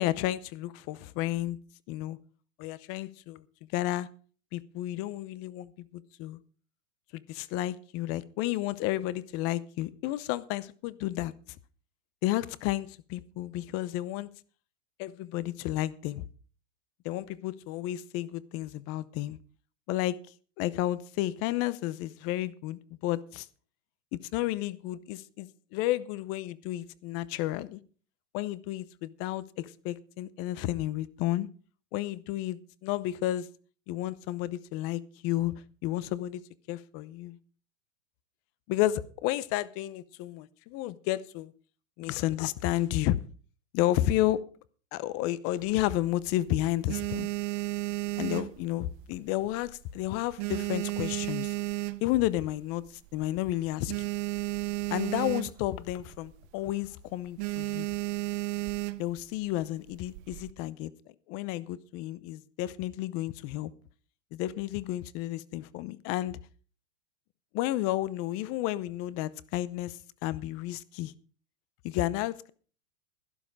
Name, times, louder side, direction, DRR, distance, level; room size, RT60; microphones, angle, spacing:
voice 1, 0.0-1.6 1.9-2.2 2.6-3.4 3.7-4.1 4.5-6.4 7.1-11.3 12.2-14.3 15.0-16.3 17.0-19.4 19.9-20.2 20.6-23.5 24.1-27.8 28.3-31.5 31.9-33.5 33.9-35.5 35.8-36.4 36.7-37.4 38.7-41.5 42.0-43.2 43.7-44.4 44.9-47.3 48.2-51.5 52.0-52.8 53.1-54.1 54.9-57.9 59.0-60.9 61.3-63.7 64.3-66.4 67.5-71.1 71.8-72.5, left 15 dB, 40° left, 0.8 m, -31 dB
sound 1, 45.6-46.3 46.7-49.2 49.5-49.9 50.2-52.4 52.9-53.0 53.1-53.3 53.6-55.8 56.1-56.4 56.7-56.9 57.4-59.2 59.9-60.5, right 19 dB, 45° right, 0.7 m, -33 dB
12.0 x 11.5 x 4.8 m
supercardioid pair, 135°, 37 cm